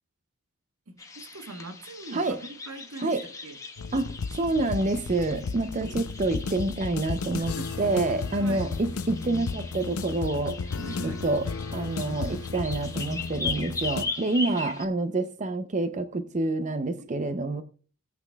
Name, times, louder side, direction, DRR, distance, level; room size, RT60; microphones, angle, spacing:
voice 1, 0.9-3.6 5.8-6.0 7.4-7.7 8.4-8.7 10.8-11.2 14.4-14.7 17.0-17.6, right 2 dB, 75° right, 1.1 m, -41 dB
sound 1, 1.0-14.9, left 3 dB, 15° left, 1.0 m, -40 dB
sound 2, 3.8-14.1, left 4 dB, 85° left, 0.5 m, -34 dB
voice 2, 3.9-10.6 11.2-11.4 11.7-17.6, right 2 dB, 35° right, 0.5 m, -27 dB
18.0 x 8.2 x 2.2 m
head